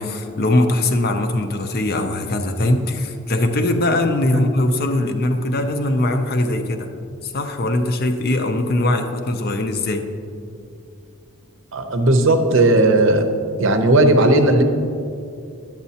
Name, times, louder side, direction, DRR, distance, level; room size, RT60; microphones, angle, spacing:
voice 1, 0.0-6.9 7.2-10.1, left 1 dB, 45° left, 6 dB, 0.5 m, -21 dB
voice 2, 11.7-13.3 13.6-14.6, right 2 dB, 60° right, 6 dB, 0.6 m, -15 dB
10.5 x 8.0 x 2.8 m, 2.5 s
head